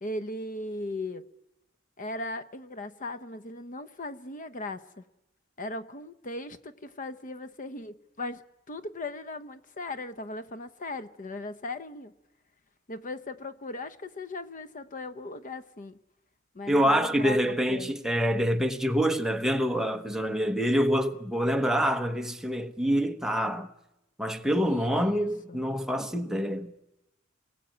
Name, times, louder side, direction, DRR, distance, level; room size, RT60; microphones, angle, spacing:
voice 1, 0.0-1.2 2.0-5.0 5.6-12.1 12.9-16.0 16.5-17.9 24.6-25.6, left 2 dB, 40° left, 0.9 m, -38 dB
voice 2, 16.7-23.7 24.2-26.7, equal, ahead, 1.1 m, -26 dB
28.5 x 21.0 x 9.1 m
head